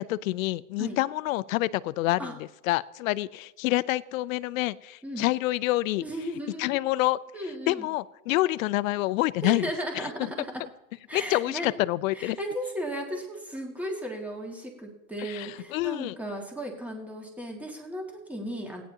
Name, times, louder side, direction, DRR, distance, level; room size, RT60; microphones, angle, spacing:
voice 1, 0.0-2.3 2.7-6.0 6.6-7.2 7.7-9.7 11.1-12.4 15.2-16.2, left 18 dB, 85° left, 19 dB, 0.5 m, -27 dB
voice 2, 6.0-6.8 7.3-7.9 9.4-10.6 11.1-11.8 12.1-18.8, equal, 5° right, 0 dB, 2.1 m, -35 dB
17.0 x 10.0 x 2.9 m, 0.98 s
supercardioid pair, 115°, 39 cm